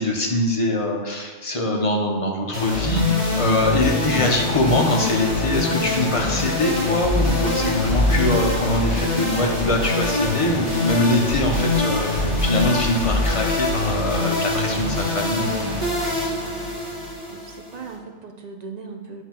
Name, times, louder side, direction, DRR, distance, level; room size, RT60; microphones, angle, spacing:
voice 1, 0.0-15.5, left 1 dB, 30° left, 0 dB, 0.8 m, -23 dB
sound 1, 2.5-17.9, left 2 dB, 30° right, 1.3 m, -23 dB
voice 2, 17.3-19.2, right 5 dB, 50° right, 2 dB, 0.5 m, -38 dB
8.3 x 2.9 x 5.8 m, 1.4 s
omnidirectional pair, 1.2 m